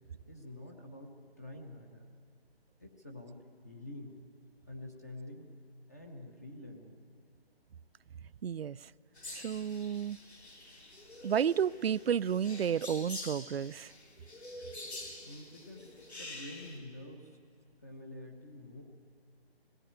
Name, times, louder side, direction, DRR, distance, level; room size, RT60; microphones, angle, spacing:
voice 1, 0.3-2.1 2.8-4.2 4.7-5.5 5.9-7.1 15.2-15.9 16.2-17.4 17.8-18.8, left 1 dB, 15° left, 2 dB, 0.7 m, -47 dB
voice 2, 8.4-8.9 9.3-10.2 11.2-13.9, right 8 dB, 70° right, 19 dB, 0.5 m, -32 dB
sound 1, 9.1-16.8, left 2 dB, 85° left, 4.0 m, -47 dB
18.5 x 17.5 x 8.8 m, 2.2 s
figure-of-eight pair, 165°, 32 cm